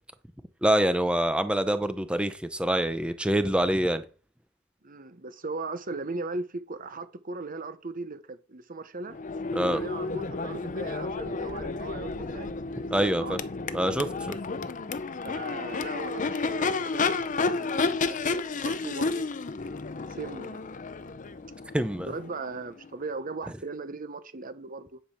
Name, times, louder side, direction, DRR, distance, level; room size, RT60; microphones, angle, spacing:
voice 1, 0.6-4.1 9.5-9.8 12.9-13.4 13.7-14.4 21.7-22.1, right 1 dB, 5° right, 0.7 m, -25 dB
voice 2, 4.8-9.2 9.6-12.5 13.0-13.4 15.2-18.2 18.5-19.3 20.1-20.6 22.0-25.0, right 3 dB, 45° right, 1.0 m, -38 dB
Crowd / Race car auto racing / Accelerating revving vroom, 9.1-22.9, left 4 dB, 40° left, 0.6 m, -31 dB
10.0 x 5.1 x 5.9 m
head